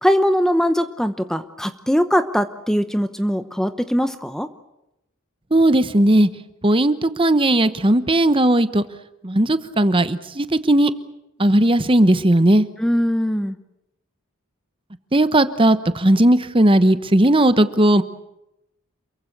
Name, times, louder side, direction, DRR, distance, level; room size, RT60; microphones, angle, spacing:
voice 1, 0.0-4.5 12.8-13.6, equal, ahead, 10 dB, 0.8 m, -21 dB
voice 2, 5.5-6.3 6.6-8.8 9.2-10.9 11.4-12.7 15.1-18.0, right 1 dB, 25° right, 12 dB, 1.0 m, -16 dB
28.0 x 23.0 x 6.7 m, 0.85 s
head